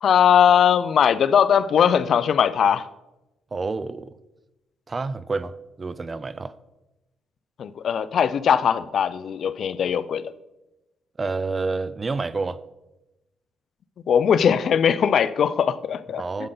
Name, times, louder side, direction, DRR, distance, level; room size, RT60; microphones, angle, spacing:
voice 1, 0.0-2.9 7.6-10.3 14.1-16.2, left 8 dB, 60° left, 16 dB, 0.5 m, -20 dB
voice 2, 3.5-4.2 4.9-6.5 11.2-12.6 16.2-16.5, right 3 dB, 30° right, 16 dB, 0.5 m, -29 dB
11.5 x 7.8 x 3.9 m, 1.0 s
cardioid pair, 90°, 0 cm